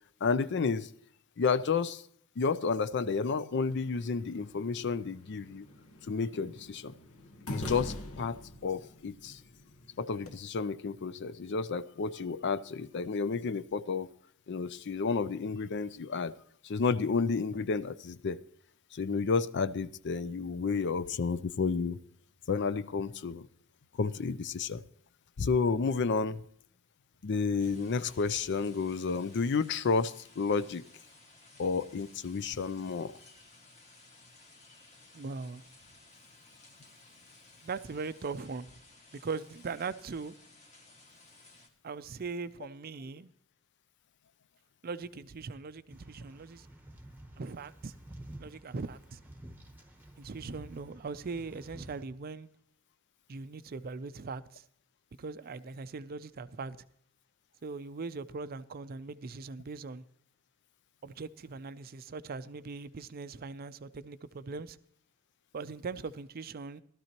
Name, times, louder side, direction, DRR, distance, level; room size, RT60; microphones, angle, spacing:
voice 1, 0.2-0.9 1.4-2.0 2.4-5.7 6.1-6.9 7.5-9.4 10.0-14.1 14.5-16.3 16.6-18.4 18.9-22.0 22.5-23.5 23.9-24.8 25.4-26.4 27.2-30.8 31.6-33.1, left 5 dB, 50° left, 0.5 m, -31 dB
sound 1, 3.6-10.3, left 1 dB, 70° left, 1.3 m, -45 dB
sound 2, 27.6-41.7, left 2 dB, 30° left, 1.8 m, -58 dB
voice 2, 35.1-35.6 37.6-38.7 39.2-40.3 41.8-43.3 44.8-46.7 47.4-47.9 48.4-49.2 50.2-52.5 53.3-54.6 55.2-56.8 57.6-60.0 61.0-64.8 65.5-66.8, right 4 dB, 40° right, 0.4 m, -40 dB
sound 3, 45.9-52.0, right 1 dB, 10° right, 1.0 m, -51 dB
16.0 x 13.0 x 2.9 m
head